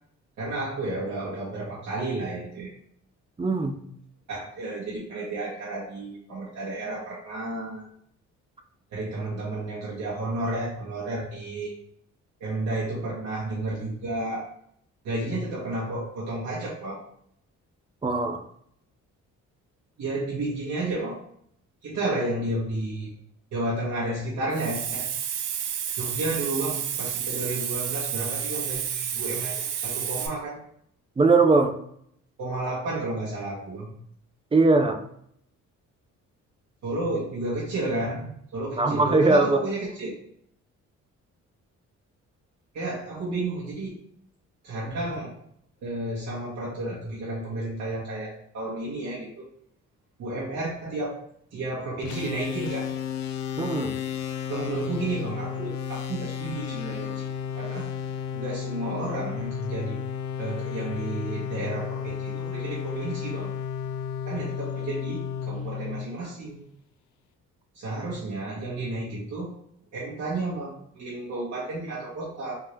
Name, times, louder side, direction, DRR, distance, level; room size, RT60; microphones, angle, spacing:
voice 1, 0.4-2.7 4.3-7.8 8.9-11.8 12.4-14.5 15.0-17.0 20.0-21.2 21.8-23.1 23.5-25.1 26.0-30.6 32.4-33.9 36.8-40.2 42.7-43.9 44.6-45.4 45.8-49.4 50.2-51.2 51.5-52.8 54.5-57.3 57.6-57.9 58.3-60.0 60.4-63.5 64.2-66.6 67.7-69.5 69.9-72.5, right 2 dB, 65° right, -8 dB, 1.3 m, -32 dB
voice 2, 3.4-3.8 18.0-18.4 31.2-31.8 34.5-35.0 38.8-39.6 53.6-53.9, right 3 dB, 20° right, 6 dB, 0.4 m, -20 dB
Hiss, 24.5-30.3, right 8 dB, 80° right, 0.6 m, -30 dB
sound 1, 52.0-66.6, left 8 dB, 65° left, 0.5 m, -33 dB
3.6 x 2.8 x 3.1 m, 0.70 s
cardioid pair, 90°, 30 cm